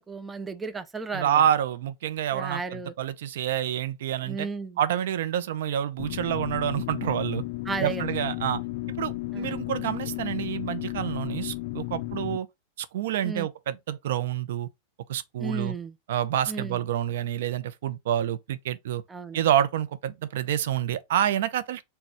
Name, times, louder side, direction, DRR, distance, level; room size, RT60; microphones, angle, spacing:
voice 1, 0.0-1.4 2.3-2.9 4.2-4.8 7.7-8.2 9.3-9.6 13.2-13.5 15.4-15.9 16.5-16.8 19.1-19.4, right 4 dB, 15° right, 0.4 m, -34 dB
voice 2, 1.1-4.5 4.8-7.4 7.8-8.6 9.0-12.5 12.8-14.7 15.1-15.7 16.1-19.0 19.3-21.8, right 10 dB, 75° right, 0.5 m, -28 dB
sound 1, 6.0-12.4, left 19 dB, 65° left, 0.3 m, -33 dB
4.2 x 2.2 x 4.3 m
supercardioid pair, 130°, 0 cm